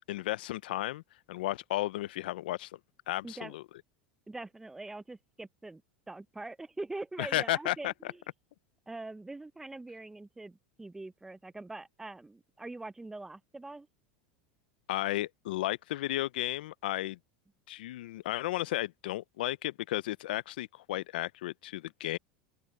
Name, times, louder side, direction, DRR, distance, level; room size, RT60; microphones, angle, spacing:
voice 1, 0.1-1.0 1.3-2.7 3.1-3.6 7.2-7.9 14.9-17.2 17.7-22.2, left 16 dB, 85° left, 0.5 m, -33 dB
voice 2, 3.2-3.5 4.3-5.8 6.1-8.2 8.9-13.9, right 2 dB, 10° right, 0.6 m, -43 dB
open air
supercardioid pair, 130°, 5 cm